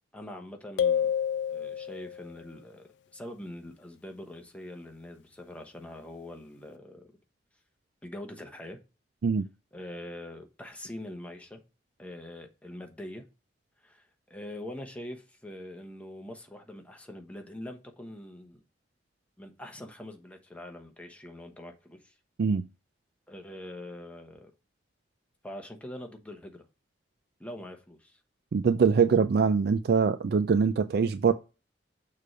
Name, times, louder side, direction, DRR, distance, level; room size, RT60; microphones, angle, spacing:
voice 1, 0.1-1.1 1.5-7.1 8.0-8.8 9.7-11.6 12.0-13.3 13.8-18.6 19.4-22.1 23.3-24.5 25.4-26.6 27.4-28.2, left 1 dB, 10° left, 1.0 m, -43 dB
sound 1, 0.8-2.3, left 8 dB, 70° left, 0.3 m, -28 dB
voice 2, 28.5-31.3, right 5 dB, 60° right, 0.4 m, -23 dB
6.7 x 3.3 x 5.0 m
head